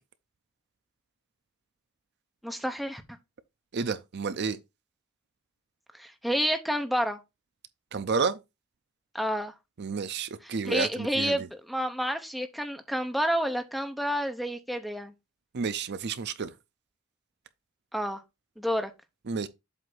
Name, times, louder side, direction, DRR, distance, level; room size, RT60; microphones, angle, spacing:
voice 1, 2.4-3.0 5.9-7.2 9.1-9.5 10.4-15.1 17.9-18.2 18.6-18.9, equal, ahead, 0.7 m, -29 dB
voice 2, 3.7-4.6 7.9-8.4 9.8-11.5 15.5-16.5 19.3-19.5, right 5 dB, 50° right, 0.5 m, -30 dB
7.8 x 2.7 x 5.9 m
head